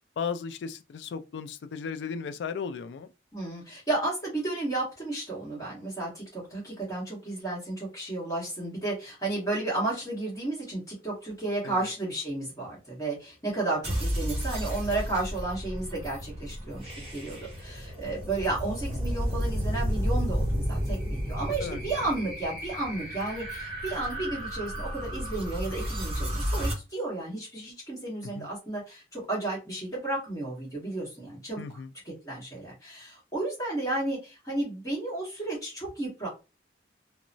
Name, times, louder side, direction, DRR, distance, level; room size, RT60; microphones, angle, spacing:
voice 1, 0.2-3.1 11.6-11.9 21.5-21.8 28.2-28.5 31.6-31.9, left 6 dB, 75° left, 0.3 m, -36 dB
voice 2, 3.3-31.6 32.0-36.3, right 2 dB, 20° left, 1.3 m, -33 dB
sound 1, 13.8-26.7, equal, 30° right, 0.8 m, -32 dB
2.9 x 2.1 x 2.5 m
head